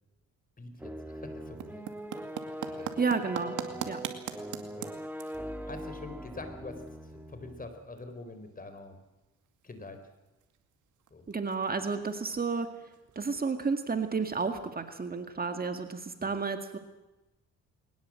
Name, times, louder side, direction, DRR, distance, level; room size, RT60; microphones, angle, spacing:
voice 1, 0.6-1.9 2.7-3.0 3.7-3.9 4.7-5.0 5.7-9.0 9.6-10.1 11.1-11.3 16.2-16.3, left 3 dB, 30° left, 8 dB, 4.5 m, -45 dB
sound 1, 0.8-7.7, right 1 dB, 5° right, 1.7 m, -41 dB
sound 2, 1.3-15.6, right 10 dB, 80° right, 2.4 m, -46 dB
voice 2, 2.8-3.6 3.9-4.0 11.3-12.7 13.2-16.8, right 4 dB, 30° right, 7 dB, 2.0 m, -31 dB
22.0 x 19.5 x 7.7 m, 1.0 s
cardioid pair, 90°, 30 cm